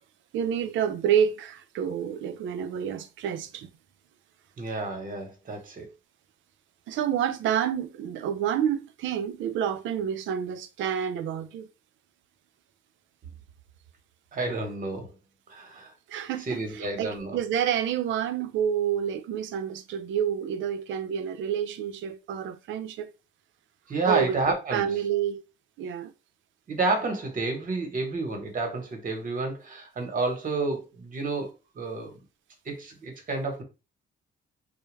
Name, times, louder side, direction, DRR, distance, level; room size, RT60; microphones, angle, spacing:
voice 1, 0.3-3.7 6.9-11.7 16.1-23.1 24.1-24.4 24.7-25.4 25.8-26.1, right 9 dB, 75° right, 0.4 m, -28 dB
voice 2, 4.6-5.9 14.3-15.1 15.5-15.9 16.5-17.4 23.9-24.9 26.7-32.2 32.7-33.6, right 3 dB, 45° right, 1.0 m, -30 dB
2.2 x 2.1 x 3.1 m
cardioid pair, 90°, 20 cm